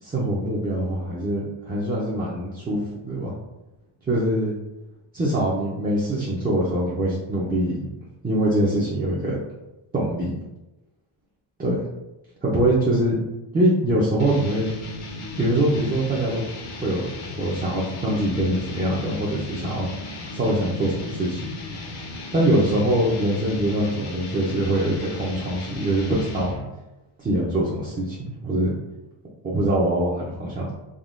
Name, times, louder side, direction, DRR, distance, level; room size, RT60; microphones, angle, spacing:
voice 1, 0.0-3.3 4.1-4.6 5.1-7.8 8.2-9.4 9.9-10.3 11.6-11.8 12.4-13.2 13.5-14.7 15.4-16.4 16.8-19.9 20.3-21.4 22.3-26.5 27.2-28.7 29.4-30.7, right 1 dB, 20° right, -6 dB, 0.4 m, -23 dB
sound 1, 14.2-26.7, left 2 dB, 90° left, 0.8 m, -36 dB
3.5 x 2.2 x 2.4 m, 1.0 s
cardioid pair, 120°, 50 cm